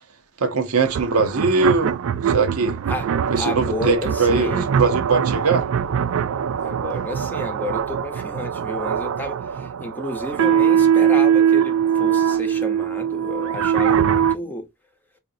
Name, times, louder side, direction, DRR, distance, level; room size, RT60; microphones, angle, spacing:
voice 1, 0.4-1.9 2.3-2.8 3.3-5.6, right 4 dB, 85° right, 0.8 m, -21 dB
sound 1, 0.8-14.3, right 8 dB, 65° right, 0.3 m, -21 dB
voice 2, 3.4-4.7 6.6-14.7, left 1 dB, 10° left, 0.7 m, -31 dB
5.0 x 2.5 x 2.6 m
head